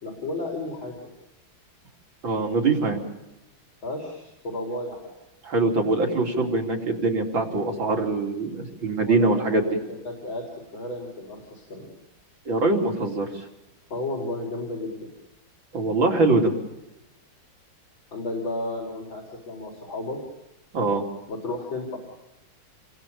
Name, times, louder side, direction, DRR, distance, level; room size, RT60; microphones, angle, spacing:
voice 1, 0.0-1.0 3.8-5.1 9.0-9.6 9.9-10.4 10.7-11.9 13.9-15.1 18.1-20.2 21.3-22.0, left 2 dB, 85° left, -1 dB, 5.3 m, -33 dB
voice 2, 2.2-3.0 5.4-9.6 12.5-13.4 15.7-16.5 20.7-21.0, right 3 dB, 80° right, 1 dB, 4.3 m, -23 dB
30.0 x 23.0 x 7.1 m, 0.94 s
omnidirectional pair, 2.1 m